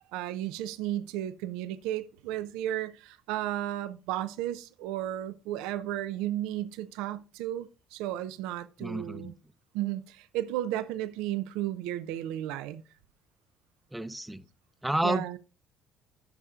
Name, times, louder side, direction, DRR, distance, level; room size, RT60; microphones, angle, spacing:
voice 1, 0.1-9.3 9.7-12.8 15.0-15.4, right 13 dB, 75° right, 0.4 m, -34 dB
voice 2, 8.8-9.3 13.9-14.4 14.8-15.4, right 1 dB, 5° right, 0.6 m, -31 dB
12.0 x 5.4 x 2.4 m
hypercardioid pair, 55°, 0 cm